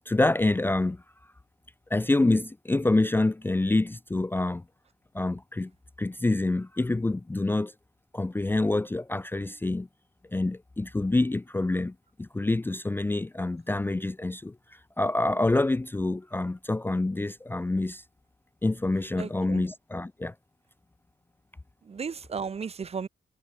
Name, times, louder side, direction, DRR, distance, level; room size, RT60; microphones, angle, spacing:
voice 1, 0.1-1.0 1.9-4.6 5.1-5.7 6.0-7.7 8.1-9.9 10.3-18.0 18.6-20.3, left 2 dB, 10° left, 0.5 m, -27 dB
voice 2, 19.2-19.6 21.8-23.1, right 6 dB, 35° right, 0.8 m, -35 dB
wide cardioid pair, 160°, 19 cm